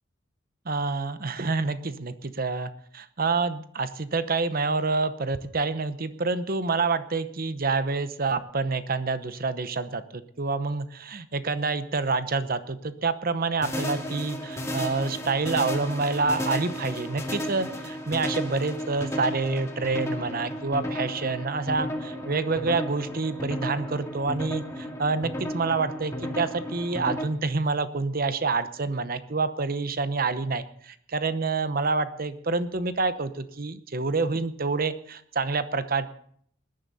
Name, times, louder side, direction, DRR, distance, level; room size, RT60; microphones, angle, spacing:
voice 1, 0.6-36.1, right 3 dB, 45° right, 12 dB, 0.8 m, -27 dB
sound 1, 13.6-27.2, equal, 15° left, 2.2 m, -33 dB
20.0 x 10.5 x 4.1 m, 0.63 s
head